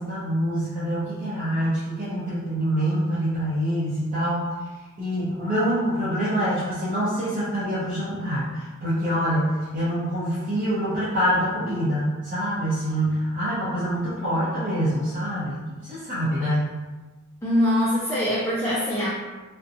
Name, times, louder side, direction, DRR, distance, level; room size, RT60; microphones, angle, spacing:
voice 1, 0.0-4.4 5.0-16.7, equal, 40° right, -11 dB, 0.6 m, -25 dB
voice 2, 17.4-19.1, left 1 dB, 10° left, -7 dB, 0.3 m, -23 dB
2.5 x 2.1 x 2.6 m, 1.3 s
head